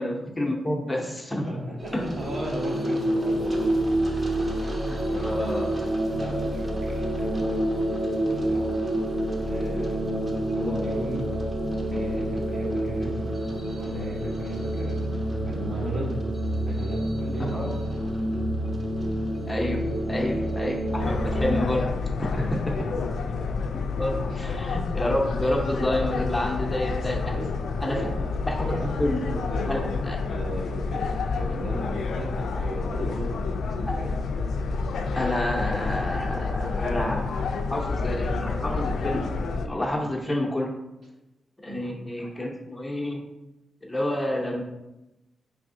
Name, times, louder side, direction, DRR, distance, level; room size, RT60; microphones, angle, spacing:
voice 1, 0.0-1.5 1.9-2.1 4.9-5.9 17.5-17.7 19.5-19.8 20.1-21.9 22.2-22.7 23.9-27.4 27.8-28.0 28.5-29.8 30.1-30.2 35.1-39.2 39.6-40.7 41.6-43.2 43.8-44.6, left 1 dB, 15° left, 0 dB, 0.7 m, -29 dB
voice 2, 1.4-4.0 4.3-4.6 5.0-5.4 6.1-7.6 8.2-8.7 9.4-10.0 10.5-11.3 11.9-13.4 13.8-15.1 15.5-16.2 16.7-17.7 22.3-22.9 24.3-24.4 27.2-28.9 29.2-34.1 39.9-40.1 41.7-41.9, right 1 dB, 60° right, -3 dB, 1.3 m, -37 dB
sound 1, 1.8-21.6, right 1 dB, 30° right, 0.9 m, -28 dB
sound 2, 21.0-39.7, left 4 dB, 75° left, 0.3 m, -29 dB
4.7 x 3.4 x 2.6 m, 0.97 s
cardioid pair, 75°, 0 cm